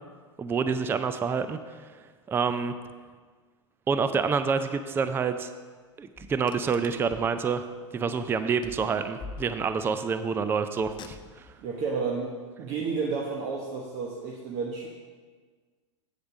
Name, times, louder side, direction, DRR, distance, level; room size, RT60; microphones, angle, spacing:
voice 1, 0.4-1.8 2.3-2.7 3.9-5.5 6.0-7.6 7.9-11.5, right 5 dB, 15° right, 10 dB, 0.4 m, -27 dB
Car, 6.2-7.4 8.6-9.9 10.8-11.6, left 4 dB, 30° left, 0.6 m, -45 dB
voice 2, 11.6-12.3 12.6-14.9, right 4 dB, 45° right, -1 dB, 1.1 m, -31 dB
8.1 x 5.1 x 6.2 m, 1.5 s
hypercardioid pair, 110°, 16 cm